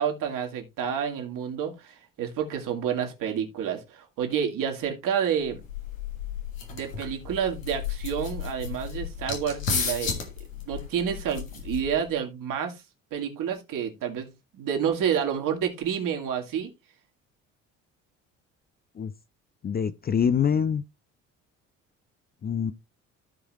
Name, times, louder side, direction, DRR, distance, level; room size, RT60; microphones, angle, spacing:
voice 1, 0.0-5.6 6.7-10.3 10.6-12.8 13.1-16.7, right 8 dB, 55° right, 2.3 m, -29 dB
sound 1, 5.5-12.1, left 6 dB, 80° left, 1.7 m, -34 dB
voice 2, 19.6-20.8 22.4-22.7, left 7 dB, 25° left, 0.5 m, -25 dB
14.0 x 4.8 x 3.0 m
figure-of-eight pair, 50°, 39 cm